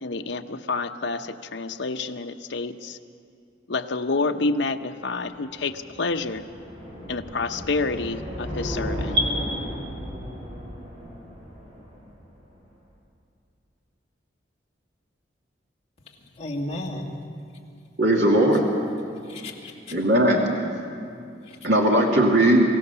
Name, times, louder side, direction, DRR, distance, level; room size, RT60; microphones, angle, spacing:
voice 1, 0.0-3.0 3.7-6.4 7.1-9.2, left 3 dB, 80° left, 7 dB, 0.8 m, -28 dB
sound 1, 5.2-12.4, equal, 35° right, 6.8 m, -35 dB
voice 2, 16.3-17.1 18.4-18.9 19.3-19.9 21.5-21.6, left 1 dB, 35° left, -2 dB, 2.4 m, -34 dB
voice 3, 18.0-18.6 19.9-20.5 21.6-22.6, right 1 dB, 75° right, -1 dB, 2.2 m, -18 dB
24.0 x 16.5 x 6.9 m, 2.5 s
head